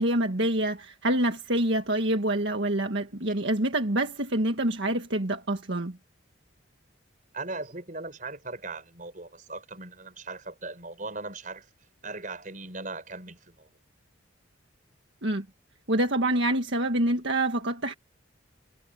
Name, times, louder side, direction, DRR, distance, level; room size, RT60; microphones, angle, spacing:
voice 1, 0.0-6.0 15.2-15.5 15.9-17.9, right 1 dB, 65° right, 1.7 m, -26 dB
voice 2, 7.3-11.7 12.0-13.7, right 3 dB, 40° right, 5.9 m, -39 dB
head